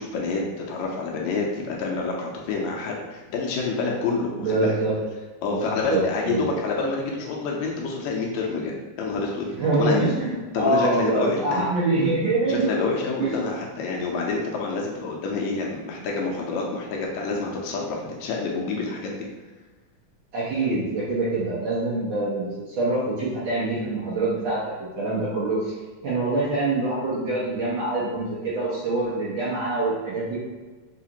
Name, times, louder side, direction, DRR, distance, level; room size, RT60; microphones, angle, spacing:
voice 1, 0.0-4.7 5.4-9.5 9.7-10.0 10.5-11.6 12.5-19.3, left 4 dB, 80° left, -1 dB, 1.8 m, -28 dB
voice 2, 4.4-4.9 5.5-6.0 6.3-6.6 9.6-12.7 13.2-13.3 20.3-24.6 25.0-25.7 26.0-30.4, right 2 dB, 70° right, -9 dB, 1.1 m, -25 dB
4.8 x 2.5 x 2.8 m, 1.3 s
omnidirectional pair, 3.3 m